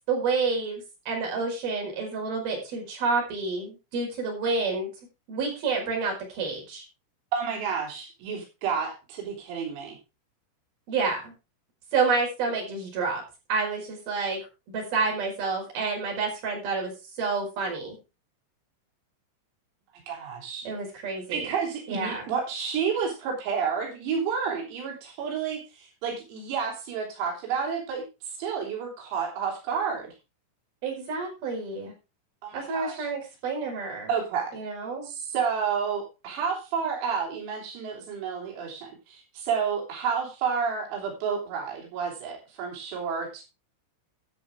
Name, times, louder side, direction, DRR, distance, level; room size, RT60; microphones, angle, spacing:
voice 1, 0.1-4.9 5.3-6.8 10.9-11.3 11.9-13.2 13.5-14.4 14.7-18.0 20.6-21.5 21.9-22.3 30.8-31.9 32.5-34.1 34.5-35.1, right 4 dB, 45° right, 0 dB, 6.6 m, -29 dB
voice 2, 7.3-10.0 20.1-20.7 21.3-28.0 28.4-30.1 32.4-33.1 34.1-34.5 35.0-43.4, right 6 dB, 80° right, 0 dB, 5.9 m, -30 dB
13.0 x 9.6 x 3.6 m, 0.28 s
omnidirectional pair, 6.0 m